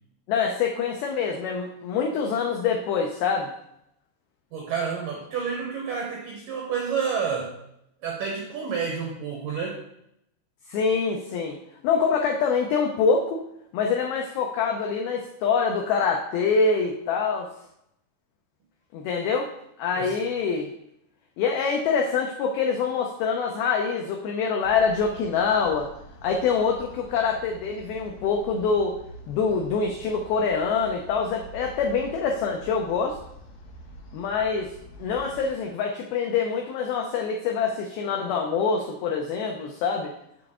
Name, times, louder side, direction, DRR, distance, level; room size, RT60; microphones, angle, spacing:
voice 1, 0.3-3.5 10.7-11.6 11.8-13.4 13.7-17.5 18.9-19.5 19.8-20.7 21.4-25.9 26.2-29.0 29.3-33.2 34.1-34.7 35.0-40.1, left 5 dB, 85° left, 2 dB, 2.1 m, -25 dB
voice 2, 4.5-7.6 8.0-9.8 20.0-20.2, right 6 dB, 85° right, 0 dB, 1.9 m, -29 dB
sound 1, 24.6-35.5, right 1 dB, 60° left, 2.5 m, -46 dB
6.9 x 6.9 x 3.6 m, 0.78 s
omnidirectional pair, 5.1 m